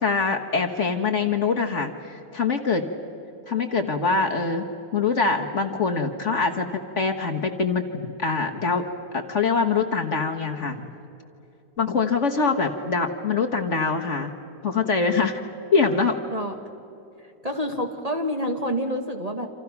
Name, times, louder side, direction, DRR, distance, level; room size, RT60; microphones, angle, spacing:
voice 1, 0.0-2.9 3.5-4.6 4.9-6.7 7.0-8.8 9.1-10.9 11.8-14.3 14.6-15.4 15.7-16.2, left 4 dB, 45° left, 3 dB, 1.5 m, -24 dB
voice 2, 17.4-19.5, equal, 20° right, 3 dB, 1.9 m, -27 dB
28.5 x 27.0 x 5.9 m, 2.9 s
omnidirectional pair, 1.9 m